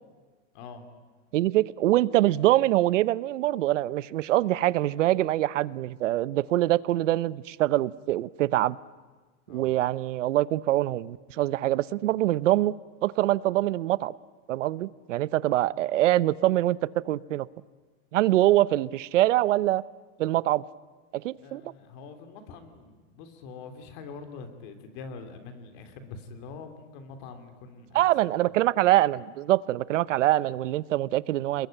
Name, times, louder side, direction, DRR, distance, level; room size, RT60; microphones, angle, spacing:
voice 1, 0.5-0.9 9.5-9.7 21.4-28.1 28.4-28.5, left 4 dB, 40° left, 8 dB, 3.1 m, -44 dB
voice 2, 1.3-8.8 9.5-12.7 13.0-14.1 14.5-17.5 18.1-19.8 20.2-20.6 21.1-21.7 27.9-31.7, right 15 dB, 85° right, 19 dB, 0.8 m, -24 dB
29.0 x 21.0 x 9.0 m, 1.3 s
supercardioid pair, 175°, 36 cm